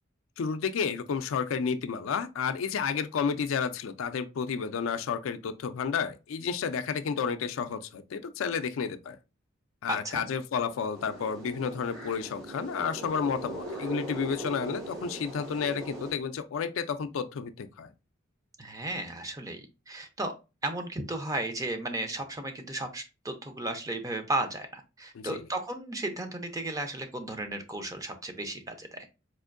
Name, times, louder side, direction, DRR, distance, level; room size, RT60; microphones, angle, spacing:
voice 1, 0.4-9.2 9.8-17.9 25.1-25.4, left 6 dB, 80° left, 0.4 m, -31 dB
voice 2, 9.9-10.2 18.6-20.3 20.6-29.1, right 2 dB, 15° right, 0.5 m, -34 dB
sound 1, 10.9-16.1, right 2 dB, 75° right, 2.1 m, -40 dB
4.2 x 2.6 x 2.4 m
head